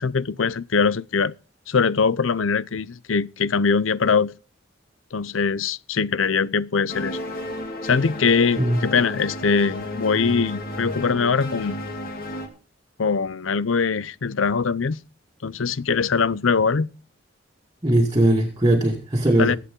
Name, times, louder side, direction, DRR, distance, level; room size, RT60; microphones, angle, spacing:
voice 1, 0.0-1.3 1.7-4.3 5.1-7.2 7.8-11.8 13.0-15.0 15.4-16.9 19.4-19.6, left 5 dB, 75° left, 0.7 m, -22 dB
the last man in space music by kris, 6.9-12.5, left 1 dB, 50° left, 2.8 m, -32 dB
voice 2, 17.8-19.6, right 1 dB, 20° right, 2.1 m, -19 dB
22.0 x 8.6 x 3.8 m
head